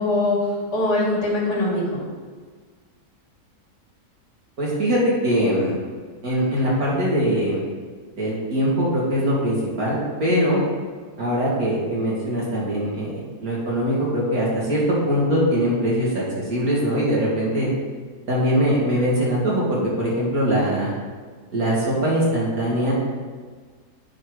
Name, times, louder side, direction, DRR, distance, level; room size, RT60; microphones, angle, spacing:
voice 1, 0.0-2.0, left 2 dB, 75° left, -5 dB, 2.9 m, -22 dB
voice 2, 4.6-5.7 6.2-7.6 8.2-10.6 11.2-17.7 18.3-20.9 21.5-22.9, equal, 65° right, -6 dB, 2.9 m, -22 dB
10.5 x 4.4 x 5.0 m, 1.5 s
omnidirectional pair, 1.7 m